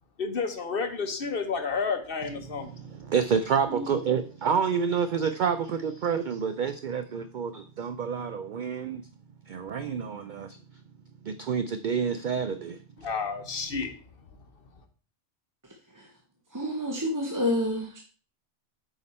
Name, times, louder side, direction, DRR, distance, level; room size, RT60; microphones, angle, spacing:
voice 1, 0.2-2.7 13.0-13.9, left 5 dB, 55° left, 1.2 m, -30 dB
voice 2, 2.5-9.0 9.5-10.6 11.2-12.8, right 6 dB, 55° right, 0.5 m, -28 dB
voice 3, 16.5-18.0, left 1 dB, 20° right, 0.8 m, -28 dB
8.3 x 5.1 x 4.2 m
omnidirectional pair, 1.2 m